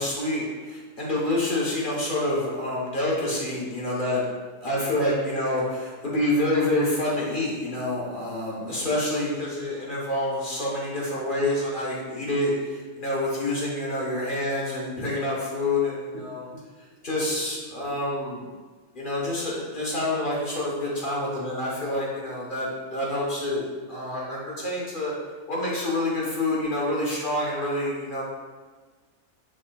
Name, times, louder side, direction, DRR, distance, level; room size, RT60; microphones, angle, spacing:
voice 1, 0.0-4.3 4.6-16.5 17.0-18.4 18.9-23.6 23.9-25.1 25.5-28.2, left 1 dB, 40° left, -5 dB, 0.9 m, -27 dB
6.4 x 3.6 x 2.2 m, 1.4 s
omnidirectional pair, 1.7 m